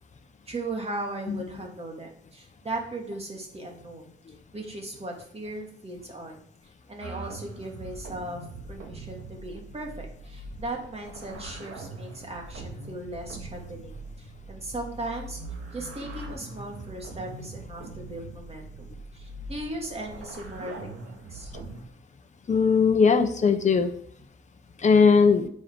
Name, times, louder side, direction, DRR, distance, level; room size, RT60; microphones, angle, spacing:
voice 1, 0.5-4.1 4.5-6.4 6.9-8.4 8.7-15.4 15.7-18.9 19.1-21.5, right 2 dB, 30° right, 1 dB, 2.4 m, -37 dB
sound 1, 7.0-21.8, right 2 dB, 80° right, 1.9 m, -42 dB
voice 2, 22.5-23.9 24.8-25.5, left 5 dB, 35° left, 6 dB, 1.0 m, -19 dB
9.1 x 5.6 x 5.3 m, 0.62 s
wide cardioid pair, 125°, 21 cm